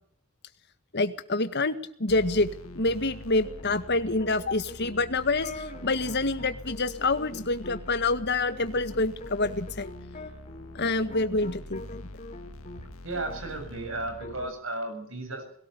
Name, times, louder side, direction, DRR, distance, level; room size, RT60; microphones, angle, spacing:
voice 1, 0.9-1.7 2.0-2.5 2.8-9.9 10.8-12.0, left 2 dB, 55° left, 10 dB, 1.8 m, -27 dB
sound 1, 2.1-14.5, left 1 dB, 85° left, 1.7 m, -45 dB
sound 2, 2.3-12.9 13.1-14.5, left 2 dB, 35° left, 3.1 m, -45 dB
voice 2, 13.0-15.4, right 2 dB, 70° right, 6 dB, 7.4 m, -34 dB
22.0 x 17.5 x 6.9 m, 0.63 s
head